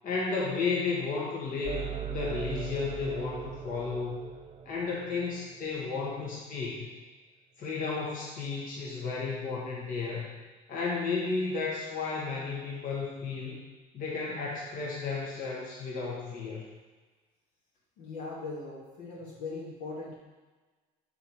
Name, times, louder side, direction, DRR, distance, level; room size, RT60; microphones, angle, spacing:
voice 1, 0.0-1.8 2.1-4.2 4.6-6.9 7.6-10.3 10.7-13.6 13.9-16.7, left 4 dB, 55° left, -4 dB, 1.3 m, -33 dB
sound 1, 1.6-5.7, right 8 dB, 35° right, 0.5 m, -39 dB
voice 2, 18.0-20.2, left 3 dB, 90° left, -5 dB, 1.8 m, -39 dB
5.7 x 4.2 x 4.5 m, 1.3 s
cardioid pair, 110°, 17 cm